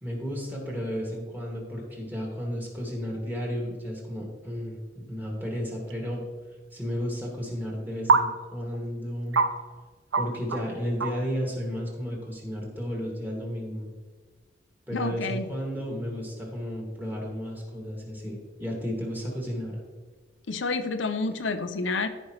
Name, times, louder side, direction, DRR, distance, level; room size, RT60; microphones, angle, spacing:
voice 1, 0.0-6.2 6.7-9.4 10.1-13.9 14.9-19.8, equal, 10° right, -2 dB, 2.2 m, -33 dB
sound 1, 5.9-6.0 8.1-8.2 8.7-8.8 9.3-9.5 10.1-10.2 10.5-10.6 11.0-11.2, right 4 dB, 85° right, 0.8 m, -21 dB
voice 2, 14.9-15.5 20.5-22.1, left 3 dB, 80° left, 8 dB, 0.6 m, -29 dB
14.5 x 5.3 x 3.2 m, 1.4 s
head